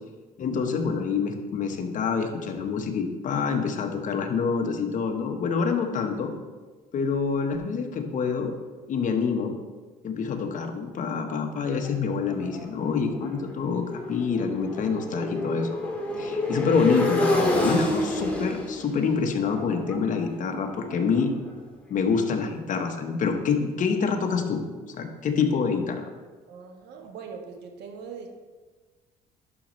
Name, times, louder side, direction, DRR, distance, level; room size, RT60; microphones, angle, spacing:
voice 1, 0.4-6.3 6.9-8.5 8.9-9.6 10.0-15.9 16.2-21.3 21.9-26.0, left 5 dB, 50° left, 4 dB, 1.1 m, -26 dB
Motorcycle, 11.8-21.7, left 1 dB, 10° left, 1.7 m, -30 dB
voice 2, 26.5-28.3, right 6 dB, 80° right, 4 dB, 1.2 m, -41 dB
11.0 x 6.2 x 3.1 m, 1.3 s
cardioid pair, 110°, 17 cm